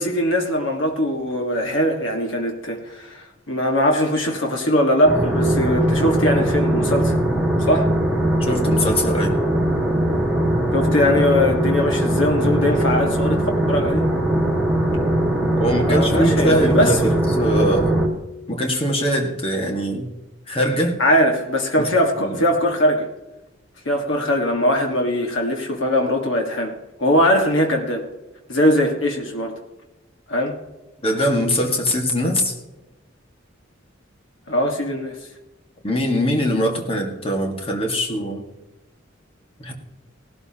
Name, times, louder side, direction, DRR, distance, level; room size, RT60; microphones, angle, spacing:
voice 1, 0.0-7.2 7.7-7.9 10.7-14.0 15.9-17.0 21.0-23.1 23.9-28.1 28.5-29.6 30.3-30.6 34.5-35.2, left 1 dB, 80° left, 2 dB, 1.7 m, -20 dB
sound 1, 5.0-18.1, right 1 dB, 5° right, 1.9 m, -20 dB
voice 2, 8.4-9.4 15.6-18.0 18.5-20.1 20.5-21.0 21.8-21.9 22.2-22.4 31.0-32.5 35.8-38.4 39.6-39.7, equal, 30° left, 2 dB, 1.8 m, -22 dB
17.5 x 12.5 x 2.9 m, 1.0 s
head